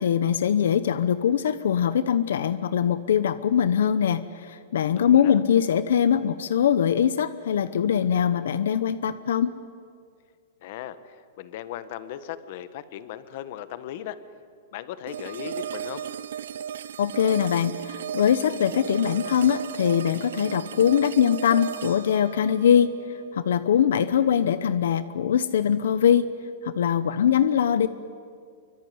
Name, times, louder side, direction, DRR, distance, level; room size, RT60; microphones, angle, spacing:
voice 1, 0.0-9.5 17.0-22.9 23.3-26.3 26.6-27.9, left 8 dB, 85° left, 14 dB, 0.9 m, -22 dB
voice 2, 4.9-5.4 10.6-14.2 14.7-16.0, left 11 dB, 45° left, 13 dB, 1.4 m, -37 dB
sound 1, 15.1-24.1, right 9 dB, 85° right, 0.7 m, -35 dB
25.0 x 24.0 x 9.6 m, 2.2 s
supercardioid pair, 165°, 0 cm